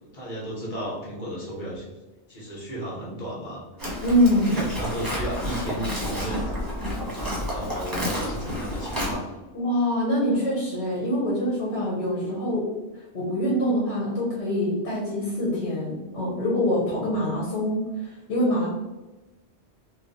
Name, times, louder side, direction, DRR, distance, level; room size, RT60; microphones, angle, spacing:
voice 1, 0.0-1.9 2.3-3.6 4.5-6.5 7.0-9.3, right 1 dB, 45° left, -6 dB, 1.3 m, -34 dB
Livestock farm animals working animals, 3.8-9.1, equal, 20° right, 1.0 m, -30 dB
voice 2, 4.0-4.6 9.5-18.7, equal, 75° left, -5 dB, 1.3 m, -25 dB
3.1 x 2.4 x 3.8 m, 1.1 s
omnidirectional pair, 1.2 m